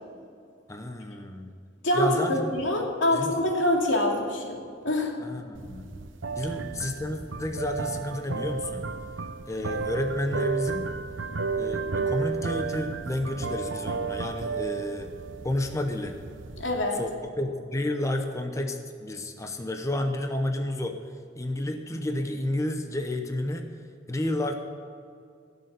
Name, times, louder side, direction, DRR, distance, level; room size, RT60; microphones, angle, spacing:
voice 1, 0.7-1.5 1.9-2.6 3.1-3.4 5.2-5.9 6.3-8.8 9.5-10.9 11.6-15.1 15.4-16.2 16.9-21.0 21.4-23.7 24.1-24.5, left 1 dB, 15° left, 5 dB, 0.8 m, -31 dB
voice 2, 1.8-4.6 4.8-5.1 16.6-17.0, left 1 dB, 85° left, 0 dB, 2.6 m, -25 dB
sound 1, 5.5-17.1, right 4 dB, 85° right, 0.7 m, -33 dB
17.0 x 6.8 x 8.1 m, 2.4 s
head